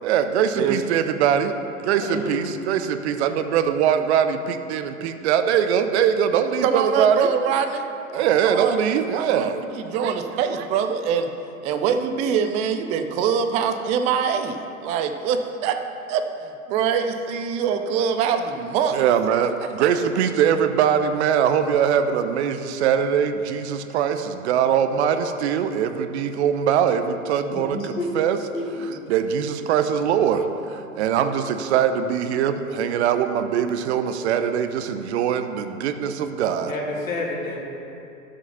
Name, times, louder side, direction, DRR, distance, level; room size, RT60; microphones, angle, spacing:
voice 1, 0.0-7.3 8.1-9.6 10.0-10.2 18.9-28.4 29.1-36.7, right 8 dB, 50° right, 9 dB, 0.8 m, -22 dB
voice 2, 2.0-2.4 27.5-28.1 28.5-29.0 36.7-37.6, left 2 dB, 70° left, -1 dB, 2.4 m, -30 dB
voice 3, 6.6-7.8 8.1-11.3 11.6-15.8 16.1-19.0 19.8-19.9, right 7 dB, 15° right, 8 dB, 0.4 m, -24 dB
12.0 x 6.5 x 5.6 m, 2.8 s
figure-of-eight pair, 95°, 42 cm